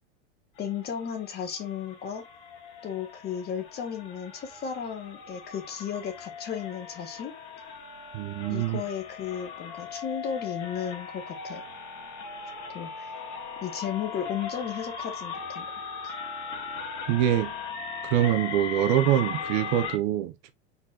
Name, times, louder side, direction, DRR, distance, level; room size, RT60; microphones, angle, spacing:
sound 1, 0.6-20.0, left 6 dB, 50° left, 1.6 m, -39 dB
voice 1, 0.6-2.2 2.8-7.3 8.5-11.6 12.4-13.1 13.6-15.6 16.0-16.1, left 8 dB, 30° left, 1.3 m, -34 dB
voice 2, 8.1-8.8 17.1-17.5 18.0-20.5, right 12 dB, 50° right, 0.8 m, -25 dB
4.4 x 4.1 x 2.8 m
supercardioid pair, 130°, 35 cm